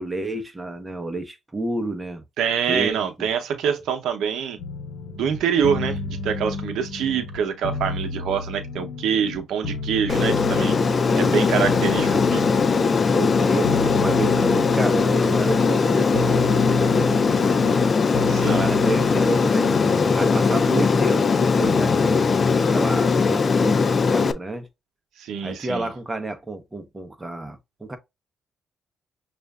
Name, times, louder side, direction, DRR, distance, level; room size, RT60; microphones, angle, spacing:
voice 1, 0.0-2.2 2.7-3.3 10.5-11.4 13.1-17.8 18.4-19.7 20.1-22.2 22.7-24.7 25.4-28.0, right 2 dB, 15° right, 0.9 m, -30 dB
voice 2, 2.4-4.6 5.1-10.8 11.2-12.5 18.3-18.7 25.2-25.9, right 8 dB, 80° right, 0.7 m, -25 dB
sound 1, 4.6-23.1, left 3 dB, 85° left, 0.9 m, -33 dB
Aircraft, 10.1-24.3, left 5 dB, 35° left, 0.4 m, -20 dB
6.4 x 2.5 x 2.3 m
cardioid pair, 90°, 0 cm